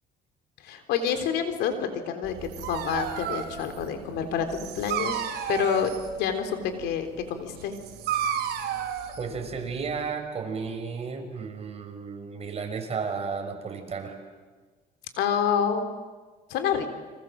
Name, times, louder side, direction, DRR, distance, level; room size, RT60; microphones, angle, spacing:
voice 1, 0.6-4.5 4.8-5.2 5.5-5.9 6.2-7.8 15.2-15.8 16.5-16.9, left 8 dB, 85° left, 7 dB, 3.7 m, -28 dB
Dog, 2.2-10.1, right 9 dB, 75° right, 4.7 m, -33 dB
voice 2, 9.2-14.2, right 5 dB, 40° right, 4 dB, 6.0 m, -33 dB
29.5 x 26.5 x 7.7 m, 1.4 s
cardioid pair, 110°, 17 cm